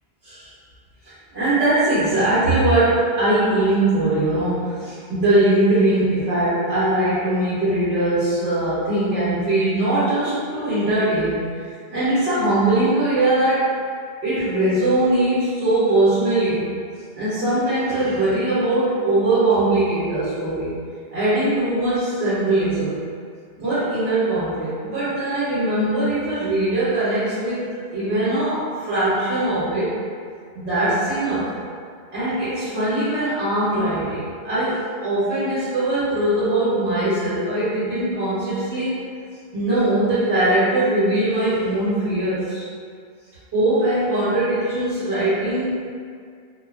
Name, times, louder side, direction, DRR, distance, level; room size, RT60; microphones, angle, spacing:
voice 1, 1.0-13.7 14.2-16.7 17.1-20.7 21.1-23.0 23.6-27.7 27.9-29.9 30.5-31.5 32.1-39.0 39.5-42.7 43.5-45.8, right 1 dB, 90° right, -13 dB, 1.0 m, -21 dB
2.5 x 2.1 x 2.3 m, 2.1 s
omnidirectional pair, 1.0 m